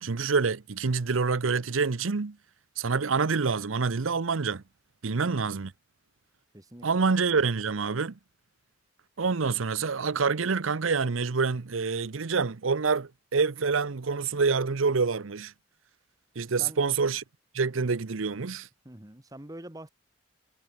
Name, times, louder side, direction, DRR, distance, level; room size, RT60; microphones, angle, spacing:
voice 1, 0.0-2.4 2.8-4.6 5.0-5.7 6.8-8.2 9.2-15.5 16.4-17.2 17.5-18.7, right 4 dB, 90° right, 0.8 m, -27 dB
voice 2, 5.0-5.4 6.5-7.0 16.6-16.8 18.8-19.9, right 1 dB, 20° right, 1.4 m, -45 dB
head